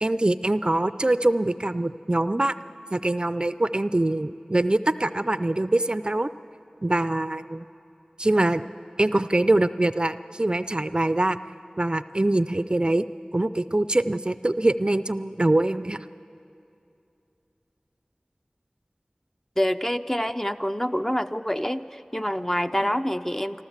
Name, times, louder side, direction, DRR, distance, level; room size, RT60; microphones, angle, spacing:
voice 1, 0.0-2.5 2.9-6.3 6.8-7.7 8.2-8.6 9.0-11.4 11.8-13.0 13.3-16.0, right 1 dB, 35° right, 13 dB, 0.4 m, -23 dB
voice 2, 19.6-23.6, equal, 15° left, 9 dB, 0.5 m, -26 dB
27.5 x 13.0 x 7.3 m, 2.7 s
wide cardioid pair, 40°, 3 cm